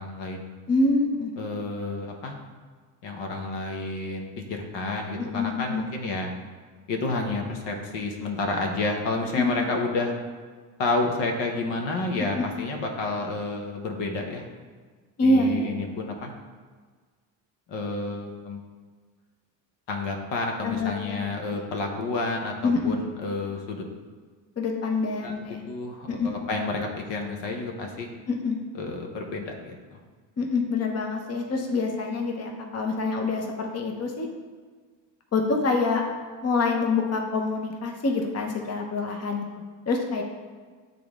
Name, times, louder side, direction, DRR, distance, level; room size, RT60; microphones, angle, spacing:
voice 1, 0.0-0.5 1.4-2.4 3.0-6.3 6.9-10.1 10.8-14.4 15.2-16.3 17.7-18.6 19.9-23.8 25.2-25.4 25.6-28.1 28.7-30.0, left 3 dB, 60° left, 2 dB, 1.1 m, -30 dB
voice 2, 0.7-1.3 5.3-5.8 9.4-9.6 12.3-12.4 15.2-15.9 20.6-21.6 22.6-22.9 24.6-25.6 26.1-26.3 28.3-28.6 30.4-34.3 35.3-36.0 36.4-39.4 39.9-40.2, left 3 dB, 30° left, 2 dB, 1.0 m, -26 dB
7.7 x 3.8 x 3.6 m, 1.5 s
hypercardioid pair, 65°, 48 cm